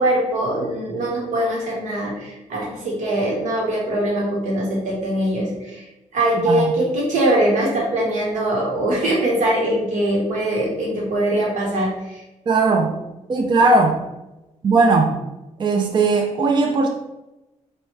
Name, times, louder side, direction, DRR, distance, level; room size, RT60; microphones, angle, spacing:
voice 1, 0.0-5.9 6.1-12.2, right 1 dB, 85° right, -3 dB, 1.4 m, -22 dB
voice 2, 12.5-13.0 13.3-14.0 14.6-15.2 15.6-16.9, right 3 dB, 40° right, 3 dB, 0.4 m, -18 dB
4.3 x 2.6 x 3.3 m, 0.99 s
cardioid pair, 100°, 13 cm